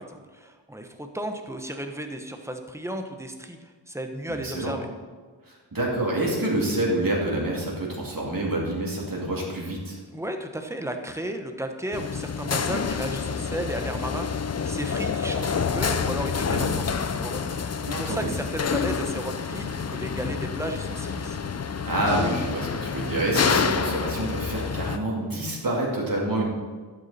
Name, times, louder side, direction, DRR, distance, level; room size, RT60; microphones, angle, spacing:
voice 1, 0.0-4.9 10.1-17.6 17.9-21.4, right 1 dB, 5° right, 5 dB, 1.1 m, -34 dB
voice 2, 4.4-4.8 5.5-10.0 16.5-16.8 17.9-18.3 21.8-26.5, right 1 dB, 50° right, -4 dB, 2.8 m, -27 dB
sound 1, 11.9-25.0, left 6 dB, 35° left, 0.5 m, -28 dB
12.0 x 8.5 x 4.3 m, 1.4 s
wide cardioid pair, 80°, 44 cm